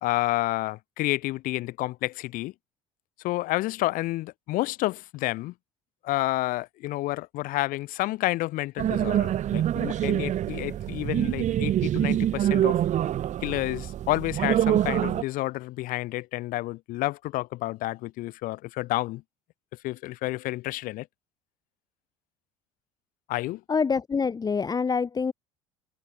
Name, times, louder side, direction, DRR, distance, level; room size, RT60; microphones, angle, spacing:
voice 1, 0.0-2.5 3.2-5.5 6.0-12.8 13.4-19.2 19.8-21.1 23.3-23.6, left 18 dB, 65° left, 2.1 m, -30 dB
sound 1, 8.8-15.2, right 11 dB, 50° right, 1.9 m, -25 dB
voice 2, 23.7-25.3, left 5 dB, 25° left, 0.9 m, -26 dB
hypercardioid pair, 70°, 16 cm